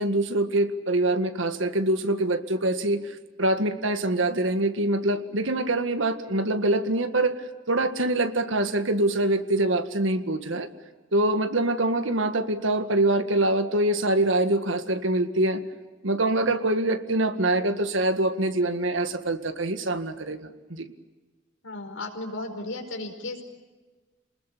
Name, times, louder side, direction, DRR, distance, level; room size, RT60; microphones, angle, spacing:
voice 1, 0.0-10.7 11.1-15.6 16.0-20.9, right 2 dB, 75° right, 9 dB, 1.9 m, -24 dB
voice 2, 21.6-23.4, left 2 dB, 75° left, 4 dB, 4.9 m, -34 dB
28.5 x 20.5 x 8.5 m, 1.3 s
head